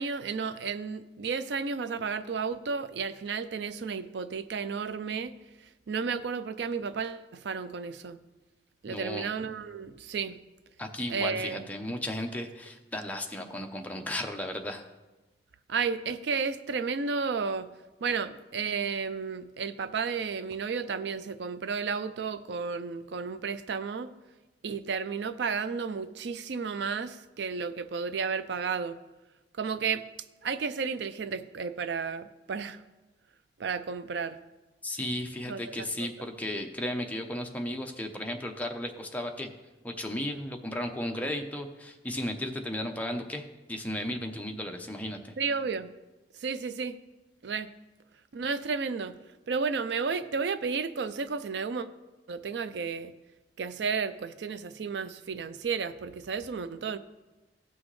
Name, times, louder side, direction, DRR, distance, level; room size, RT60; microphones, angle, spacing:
voice 1, 0.0-5.3 5.9-8.2 8.8-10.4 11.1-11.7 15.7-17.7 18.0-24.1 24.6-29.0 29.6-30.0 30.4-32.8 33.6-34.4 35.5-35.9 45.4-45.9 46.4-47.0 47.4-47.7 48.3-49.2 49.5-51.9 52.3-53.1 53.6-57.0, right 5 dB, 75° right, 13 dB, 0.4 m, -32 dB
voice 2, 8.9-9.3 10.8-14.8 34.8-39.5 39.8-45.4, left 1 dB, 10° left, 3 dB, 0.7 m, -35 dB
16.0 x 6.2 x 3.2 m, 1.1 s
head